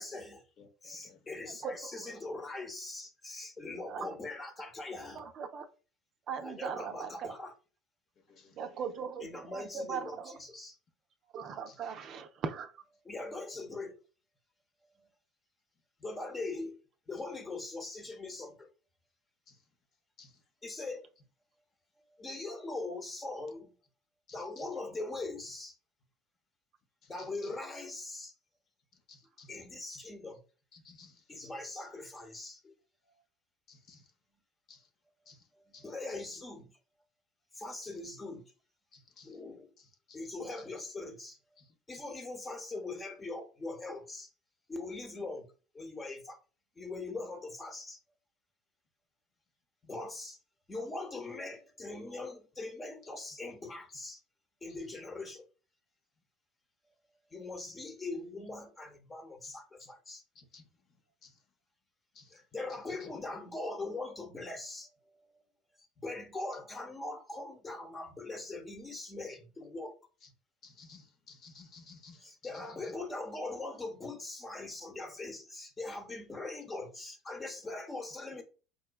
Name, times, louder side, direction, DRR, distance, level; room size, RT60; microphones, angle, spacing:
voice 1, 0.0-0.4 0.8-5.2 6.4-7.5 9.2-10.8 13.0-14.0 14.9-15.1 16.0-16.8 17.1-18.7 20.6-21.1 22.1-23.7 24.3-25.8 27.1-28.3 29.5-30.4 31.3-32.7 35.5-36.7 37.5-38.4 39.2-39.7 40.1-41.4 41.9-44.3 44.7-45.5 45.7-46.4 46.8-48.0 49.8-50.4 50.7-54.2 54.6-55.4 57.3-60.2 62.3-65.4 66.0-69.9 72.2-78.4, left 2 dB, 20° left, 0.9 m, -41 dB
voice 2, 0.6-1.6 3.6-4.1 8.2-8.8 11.7-11.9 13.5-13.6 19.5-19.6 20.2-20.4 24.3-24.7 27.0-27.5 28.9-29.5 29.9-30.0 30.7-31.3 33.7-34.1 34.7-34.9 35.3-36.2 37.8-37.9 38.9-39.4 39.8-40.2 40.6-40.7 41.6-42.0 53.2-53.4 54.7-54.8 59.4-59.9 60.3-61.4 62.1-62.4 62.7-63.2 69.3-69.4 70.2-70.3 70.6-72.9, left 4 dB, 50° left, 0.8 m, -58 dB
voice 3, 1.6-2.1 3.9-4.1 5.2-5.7 6.3-7.3 8.6-10.3 11.3-12.7, right 6 dB, 50° right, 0.5 m, -39 dB
5.1 x 2.1 x 2.3 m
hypercardioid pair, 80°, 0 cm